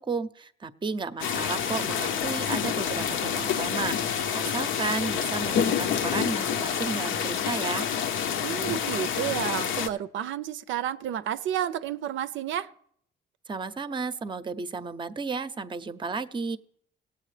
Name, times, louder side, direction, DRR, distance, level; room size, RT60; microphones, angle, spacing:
voice 1, 0.0-7.9 13.5-16.6, right 4 dB, 25° right, 0.6 m, -33 dB
sound 1, 1.2-9.9, left 8 dB, 80° left, 0.8 m, -28 dB
voice 2, 8.4-12.7, right 11 dB, 75° right, 0.5 m, -31 dB
17.5 x 8.3 x 3.3 m
cardioid pair, 90°, 20 cm